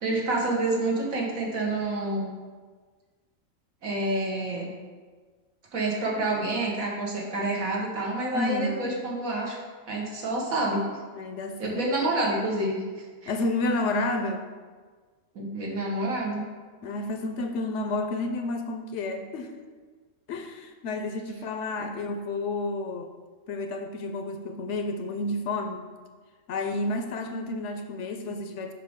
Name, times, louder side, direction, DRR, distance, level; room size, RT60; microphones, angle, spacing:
voice 1, 0.0-2.3 3.8-4.7 5.7-9.6 9.9-10.8 11.6-13.3 15.4-16.4, right 2 dB, 80° right, -2 dB, 1.7 m, -28 dB
voice 2, 8.3-9.1 11.1-11.8 13.3-14.4 16.8-19.6 20.3-23.1 23.5-25.8 26.5-28.7, left 2 dB, 70° left, 6 dB, 0.8 m, -30 dB
7.5 x 5.1 x 3.5 m, 1.5 s
omnidirectional pair, 1.4 m